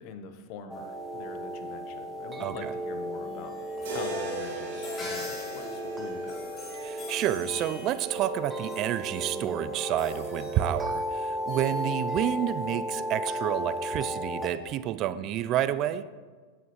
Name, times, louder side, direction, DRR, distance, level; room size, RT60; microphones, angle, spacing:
voice 1, 0.0-6.6, left 6 dB, 55° left, 8 dB, 0.7 m, -44 dB
sound 1, 0.7-14.5, equal, 10° right, 0.9 m, -35 dB
voice 2, 2.4-2.7 6.8-16.1, right 12 dB, 45° right, 14 dB, 0.3 m, -29 dB
sound 2, 3.1-12.6, left 2 dB, 30° left, 2.3 m, -44 dB
sound 3, 3.8-7.9, right 3 dB, 75° right, 2.3 m, -40 dB
9.1 x 6.3 x 3.0 m, 1.5 s
hypercardioid pair, 110°, 0 cm